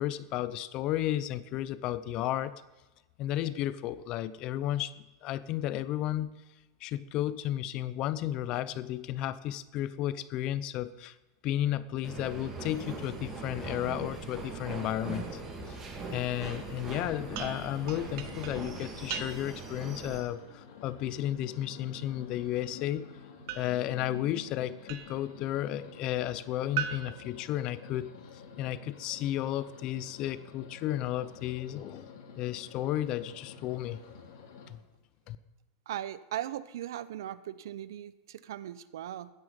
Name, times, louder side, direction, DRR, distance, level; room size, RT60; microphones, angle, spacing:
voice 1, 0.0-2.5 3.2-6.4 6.8-11.1 11.4-15.4 15.7-15.8 16.1-23.1 23.6-28.1 28.6-32.1 32.4-34.0 34.7-34.8 35.3-35.4, left 13 dB, 35° left, 16 dB, 0.6 m, -33 dB
sound 1, 12.0-20.2, right 4 dB, 20° right, 3.0 m, -41 dB
sound 2, 17.0-34.7, left 6 dB, 80° left, 3.0 m, -50 dB
sound 3, 17.3-19.7 23.5-25.4 26.8-28.2, right 10 dB, 55° right, 1.1 m, -41 dB
voice 2, 35.9-39.3, right 12 dB, 85° right, 16 dB, 0.8 m, -38 dB
15.5 x 10.0 x 5.3 m, 1.1 s
supercardioid pair, 160°, 2 cm